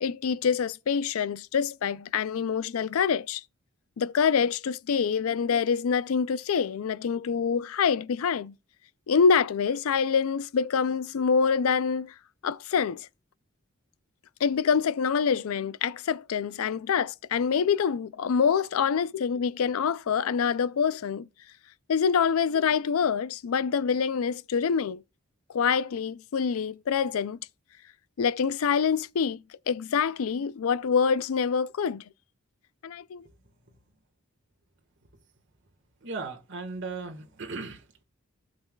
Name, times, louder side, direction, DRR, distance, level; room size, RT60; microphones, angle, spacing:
voice 1, 0.0-3.4 4.0-8.5 9.1-12.1 12.4-13.1 14.4-21.3 21.9-25.0 25.5-27.4 28.2-29.4 29.7-32.0 32.8-33.3, left 6 dB, 70° left, 0.4 m, -26 dB
voice 2, 36.0-38.0, right 3 dB, 55° right, 1.6 m, -37 dB
15.5 x 6.7 x 2.3 m
head